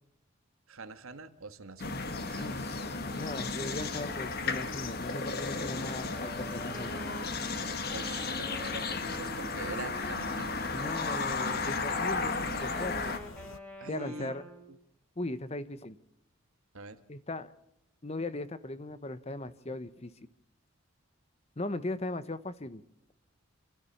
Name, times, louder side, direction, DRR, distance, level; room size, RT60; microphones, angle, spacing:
voice 1, 0.7-2.5 7.9-10.7 13.8-14.3 14.7-14.8 16.7-17.0, right 3 dB, 85° right, 10 dB, 1.6 m, -44 dB
sound 1, 1.8-13.6, left 4 dB, 70° left, 0.9 m, -48 dB
sound 2, 1.8-13.2, left 3 dB, 50° left, 1.6 m, -34 dB
voice 2, 2.3-7.1 10.7-13.2 13.9-14.4 15.2-16.0 17.1-17.5 18.0-20.1 21.6-22.8, left 2 dB, 30° left, 14 dB, 0.9 m, -38 dB
Wind instrument woodwind instrument, 5.5-11.6 12.1-14.8, left 1 dB, 5° left, 2.6 m, -47 dB
28.5 x 13.5 x 7.1 m, 0.83 s
head